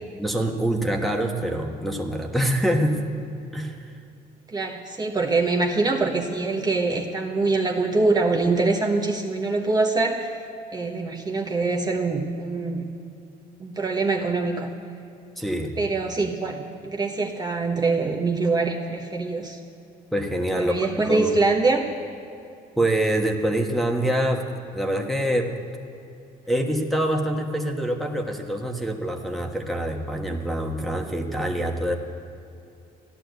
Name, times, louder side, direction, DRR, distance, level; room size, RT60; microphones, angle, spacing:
voice 1, 0.2-3.0 3.5-3.9 15.4-15.7 20.1-21.3 22.8-25.5 26.5-31.9, right 1 dB, ahead, 1 dB, 1.4 m, -25 dB
voice 2, 4.5-10.3 10.7-12.9 13.6-14.7 15.8-19.6 20.5-21.9, right 3 dB, 25° right, 1 dB, 1.2 m, -24 dB
14.0 x 11.0 x 8.0 m, 2.6 s
cardioid pair, 110°, 17 cm